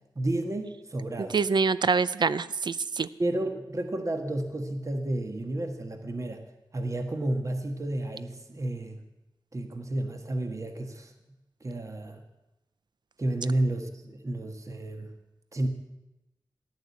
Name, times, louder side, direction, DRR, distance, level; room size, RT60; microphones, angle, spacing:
voice 1, 0.1-1.6 3.2-6.4 6.7-9.0 9.5-11.1 11.6-12.2 13.2-15.1 15.5-15.7, right 1 dB, 40° right, 5 dB, 1.5 m, -31 dB
voice 2, 1.3-3.1, right 5 dB, 65° right, 16 dB, 0.5 m, -25 dB
14.5 x 11.5 x 8.3 m, 0.96 s
wide cardioid pair, 85°, 8 cm